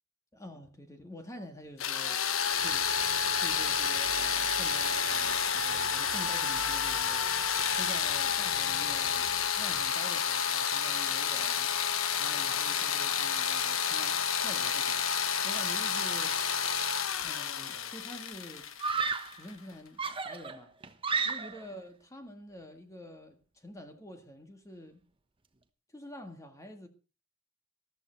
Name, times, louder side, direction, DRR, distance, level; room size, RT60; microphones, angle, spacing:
voice 1, 0.3-2.2 2.6-2.9 3.4-7.2 7.8-9.3 9.6-11.7 12.2-15.1 15.4-16.4 17.2-18.6 19.4-20.7 21.2-25.0 25.9-26.9, equal, 15° left, 1.8 m, -47 dB
sound 1, 1.8-19.5, left 7 dB, 75° left, 1.2 m, -30 dB
sound 2, 2.4-9.8, left 1 dB, 35° left, 6.7 m, -51 dB
Screaming, 17.3-17.7 18.8-19.4 20.0-21.7, right 5 dB, 25° right, 1.1 m, -33 dB
14.0 x 13.5 x 4.6 m
head